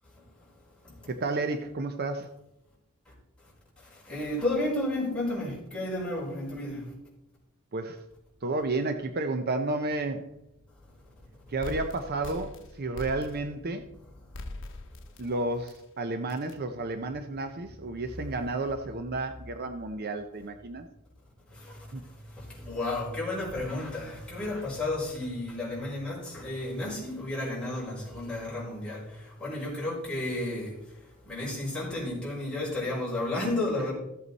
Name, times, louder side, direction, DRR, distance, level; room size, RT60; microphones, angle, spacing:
voice 1, 1.1-2.3 7.7-8.0 8.4-10.3 11.5-13.9 15.2-20.9 21.9-22.0, right 2 dB, 45° right, 7 dB, 0.7 m, -31 dB
voice 2, 4.1-6.8 22.7-29.0 29.4-30.7 31.3-33.9, left 2 dB, 5° left, -7 dB, 5.2 m, -32 dB
sound 1, 11.6-13.7 14.3-15.3 15.7-15.8 16.3-16.5, left 2 dB, 60° left, 1.0 m, -41 dB
14.5 x 8.3 x 4.1 m, 0.87 s
head